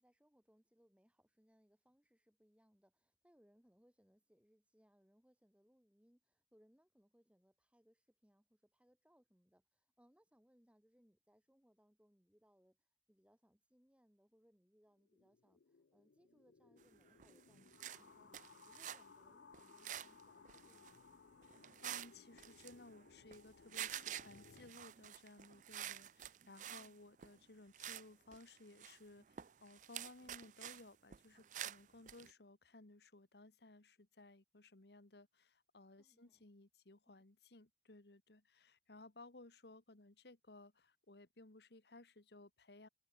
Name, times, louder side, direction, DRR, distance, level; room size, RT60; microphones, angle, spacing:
voice 1, 0.0-12.8 13.1-15.6 15.9-18.3 18.6-21.0 36.0-36.4, equal, 5° right, 2.8 m, -73 dB
sound 1, 15.0-24.7, left 5 dB, 85° left, 0.6 m, -63 dB
sound 2, 17.1-17.4 17.7-19.1 19.5-20.2 20.5-21.0 21.4-22.1 22.4-23.4 23.7-26.9 27.2-27.4 27.7-28.1 28.3-30.8 31.1-32.3, right 11 dB, 45° right, 0.4 m, -49 dB
voice 2, 21.4-42.9, left 2 dB, 65° left, 1.6 m, -60 dB
head